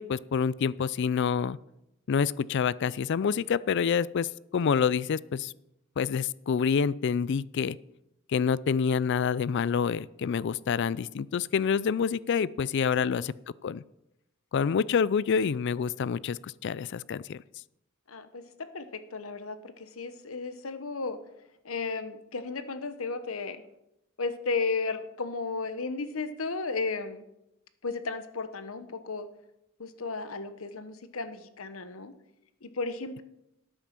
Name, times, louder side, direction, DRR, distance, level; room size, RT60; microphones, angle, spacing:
voice 1, 0.0-1.6 2.1-5.5 6.0-7.8 8.3-13.3 13.6-13.8 14.5-17.4, left 6 dB, 60° left, 20 dB, 0.4 m, -27 dB
voice 2, 18.1-18.4 18.7-21.2 21.6-23.6 24.2-27.2 27.8-29.3 29.8-32.1 32.6-33.2, left 4 dB, 90° left, 11 dB, 1.1 m, -34 dB
12.5 x 8.8 x 6.0 m, 0.86 s
head